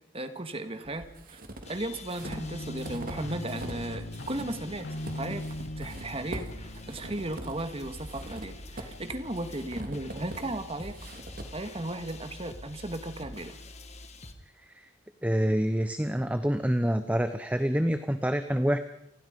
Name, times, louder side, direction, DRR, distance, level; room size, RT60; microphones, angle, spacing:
voice 1, 0.1-1.4 1.7-4.9 5.1-5.5 5.8-11.0 11.5-13.6, right 1 dB, 30° right, 8 dB, 1.9 m, -36 dB
sound 1, 0.8-3.9 4.1-12.3, right 1 dB, 45° right, 2.8 m, -43 dB
sound 2, 1.6-14.3, left 2 dB, 35° left, 1.9 m, -47 dB
sound 3, 2.2-7.4, left 1 dB, 60° left, 1.1 m, -39 dB
voice 2, 15.2-18.8, equal, 5° right, 9 dB, 0.8 m, -27 dB
28.5 x 20.0 x 5.3 m, 0.78 s
head